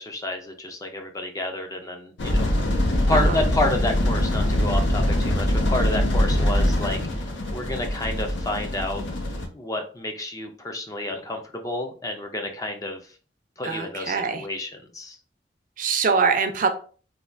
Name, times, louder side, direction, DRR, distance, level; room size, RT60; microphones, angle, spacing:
voice 1, 0.0-2.4 2.8-9.0 9.5-13.0 13.6-15.2, left 1 dB, 20° left, 4 dB, 0.4 m, -30 dB
sound 1, 2.2-9.5, left 1 dB, 90° left, 0.6 m, -23 dB
voice 2, 13.6-14.5 15.8-16.7, right 5 dB, 50° right, 7 dB, 0.4 m, -23 dB
3.2 x 2.2 x 2.5 m, 0.39 s
head